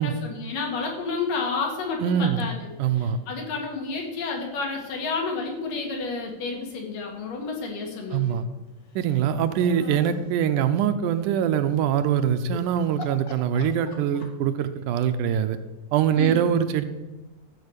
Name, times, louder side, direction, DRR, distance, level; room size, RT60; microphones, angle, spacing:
voice 1, 0.0-8.4 16.1-16.4, left 4 dB, 85° left, 1 dB, 3.6 m, -30 dB
voice 2, 2.0-2.5 2.8-3.2 8.1-8.4 9.0-15.6 15.9-16.8, right 9 dB, 80° right, 9 dB, 2.1 m, -23 dB
sound 1, 8.9-10.3 12.4-12.6 13.0-14.5, left 2 dB, 65° left, 1.0 m, -41 dB
13.5 x 4.8 x 8.1 m, 1.1 s
omnidirectional pair, 3.8 m